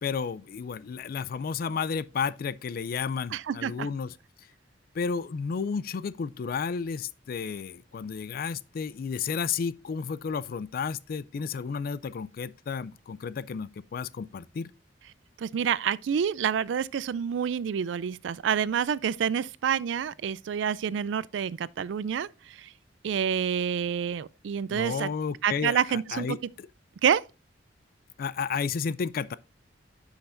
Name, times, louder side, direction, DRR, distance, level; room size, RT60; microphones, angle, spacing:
voice 1, 0.0-4.1 4.9-14.7 24.7-26.7 28.2-29.4, left 6 dB, 50° left, 0.3 m, -32 dB
voice 2, 3.3-3.9 15.4-22.7 23.0-25.1 25.4-26.4 27.0-27.2, right 8 dB, 75° right, 0.3 m, -28 dB
9.9 x 5.7 x 2.5 m
head